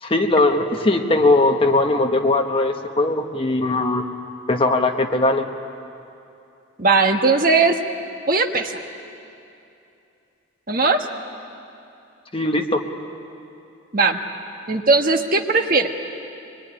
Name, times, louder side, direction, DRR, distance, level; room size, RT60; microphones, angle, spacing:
voice 1, 0.0-4.1 4.5-5.5 12.3-12.8, left 2 dB, 25° left, 4 dB, 1.2 m, -19 dB
voice 2, 6.8-7.8 8.3-8.8 10.7-11.1 13.9-14.2 14.7-15.9, right 3 dB, 45° right, 5 dB, 1.3 m, -18 dB
24.0 x 21.5 x 9.9 m, 2.7 s
head